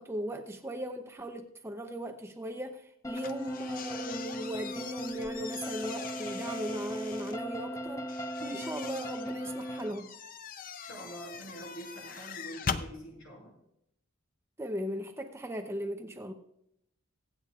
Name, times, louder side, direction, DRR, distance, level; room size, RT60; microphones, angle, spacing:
voice 1, 0.0-10.1 14.6-16.3, equal, 10° right, 5 dB, 0.7 m, -38 dB
sound 1, 3.0-9.9, equal, 15° left, 0.8 m, -38 dB
sound 2, 3.1-7.4 8.1-12.9, left 6 dB, 40° left, 0.5 m, -42 dB
voice 2, 10.8-13.5, right 1 dB, 75° left, -1 dB, 5.4 m, -45 dB
24.0 x 8.3 x 2.4 m, 0.76 s
head